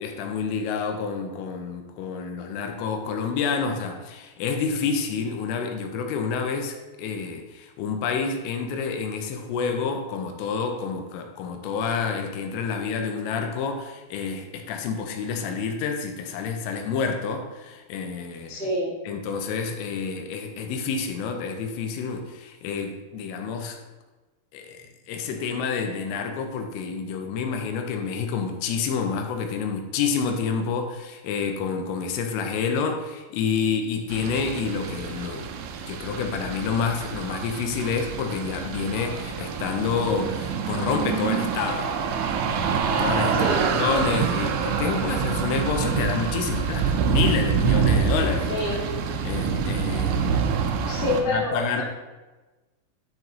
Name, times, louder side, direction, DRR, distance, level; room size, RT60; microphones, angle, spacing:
voice 1, 0.0-18.5 19.1-23.8 24.5-35.5 35.9-41.9 43.0-43.4 43.7-48.8 49.2-50.3 51.3-51.8, left 5 dB, 80° left, 4 dB, 3.3 m, -28 dB
voice 2, 18.5-18.9 43.3-43.6 48.5-48.7 50.9-51.8, left 1 dB, 40° left, -8 dB, 0.7 m, -26 dB
sound 1, 34.1-51.2, right 6 dB, 85° right, 2.8 m, -26 dB
11.0 x 4.6 x 4.0 m, 1.2 s
omnidirectional pair, 5.9 m